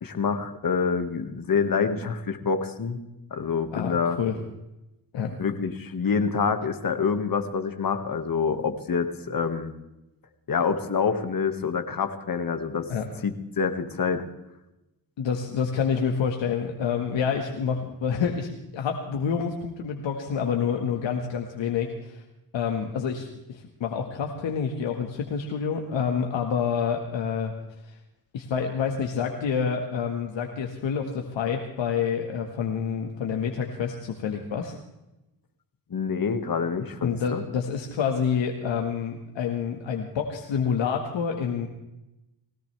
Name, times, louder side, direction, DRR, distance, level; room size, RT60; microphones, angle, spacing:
voice 1, 0.0-3.0 3.3-4.2 5.2-9.7 10.5-12.9 13.2-14.3 35.9-37.4, left 5 dB, 50° left, 7 dB, 1.8 m, -27 dB
voice 2, 3.7-4.4 5.1-5.3 12.9-13.1 15.2-22.2 22.5-27.5 27.8-28.0 28.3-34.8 37.0-41.7, left 6 dB, 75° left, 2 dB, 1.7 m, -28 dB
20.5 x 17.5 x 3.4 m, 0.94 s
cardioid pair, 75°, 45 cm